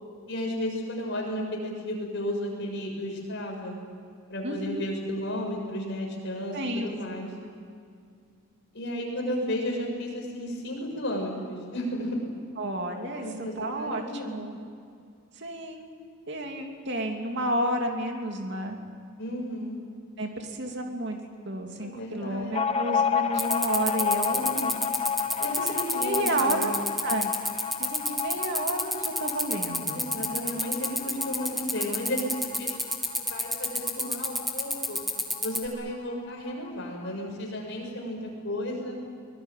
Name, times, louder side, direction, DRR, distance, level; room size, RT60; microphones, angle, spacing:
voice 1, 0.3-3.8 4.3-7.3 8.7-12.2 13.2-14.3 19.2-19.8 21.8-22.8 24.3-24.8 25.4-26.8 29.9-32.8 33.2-35.0 35.4-39.0, left 1 dB, 55° left, 0 dB, 6.9 m, -33 dB
voice 2, 4.4-4.9 6.5-6.9 12.6-14.6 15.4-15.9 16.3-18.8 20.2-21.2 21.4-24.5 25.5-26.7 27.0-27.3 27.8-30.1, right 1 dB, 55° right, 3 dB, 2.9 m, -31 dB
sound 1, 22.5-35.7 35.9-36.0 36.3-37.1, left 7 dB, 30° left, 0.9 m, -32 dB
sound 2, 23.4-35.7, left 1 dB, ahead, 2.0 m, -28 dB
24.0 x 20.5 x 9.3 m, 2.3 s
head